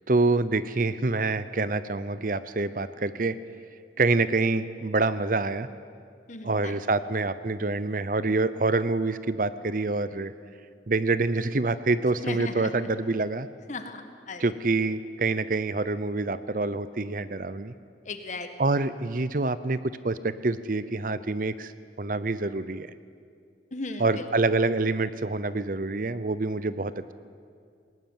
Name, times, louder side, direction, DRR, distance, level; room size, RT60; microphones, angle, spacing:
voice 1, 0.1-3.4 4.0-5.7 6.4-10.3 10.9-13.5 14.4-17.7 18.6-21.7 22.0-22.9 24.0-27.1, right 3 dB, 50° right, 14 dB, 0.7 m, -26 dB
voice 2, 6.3-6.8 12.2-12.7 13.7-14.5 18.1-18.5 23.7-24.0, left 3 dB, 40° left, 7 dB, 1.7 m, -36 dB
20.5 x 19.0 x 9.5 m, 2.3 s
head